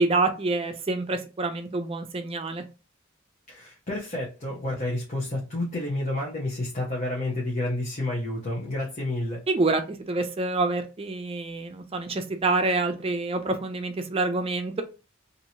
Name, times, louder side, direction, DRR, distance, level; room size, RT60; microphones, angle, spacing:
voice 1, 0.0-2.6 9.5-9.8 10.1-14.8, right 3 dB, 30° right, 7 dB, 0.5 m, -27 dB
voice 2, 3.5-9.4, left 1 dB, 35° left, -4 dB, 0.9 m, -30 dB
2.9 x 2.6 x 2.8 m, 0.31 s
head